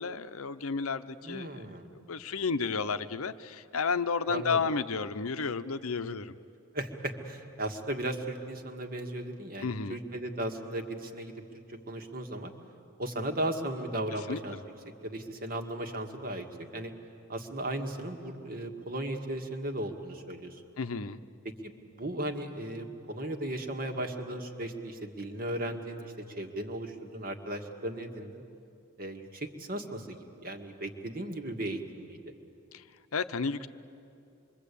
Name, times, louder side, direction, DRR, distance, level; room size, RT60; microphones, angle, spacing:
voice 1, 0.0-1.5 1.9-6.4 9.6-10.0 14.3-14.6 20.8-21.2 32.7-32.8 33.1-33.7, left 5 dB, 70° left, 11 dB, 0.8 m, -32 dB
voice 2, 1.2-1.9 4.3-4.6 6.7-11.4 11.7-12.5 13.0-14.6 15.0-16.9 17.3-20.6 21.6-21.7 22.0-28.4 29.0-32.2, right 1 dB, 45° right, 4 dB, 1.9 m, -36 dB
26.5 x 23.0 x 8.5 m, 2.6 s
head